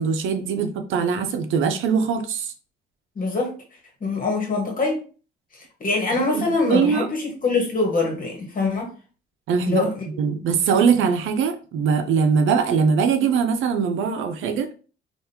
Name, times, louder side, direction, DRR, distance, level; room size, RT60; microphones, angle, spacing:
voice 1, 0.0-2.5 6.1-7.1 9.5-9.9 10.2-14.7, right 6 dB, 80° right, 0.6 m, -22 dB
voice 2, 3.1-3.5 4.0-5.0 5.5-8.9 9.7-10.0, left 3 dB, 45° left, 1.5 m, -24 dB
3.6 x 2.6 x 2.8 m
cardioid pair, 90°, 20 cm